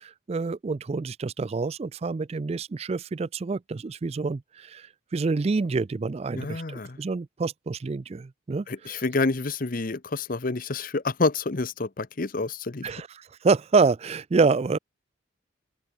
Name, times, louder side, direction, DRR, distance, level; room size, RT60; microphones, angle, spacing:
voice 1, 0.0-9.0 12.8-14.8, right 4 dB, 30° right, 0.3 m, -27 dB
voice 2, 6.3-7.0 8.7-12.9, left 3 dB, 45° left, 0.8 m, -28 dB
head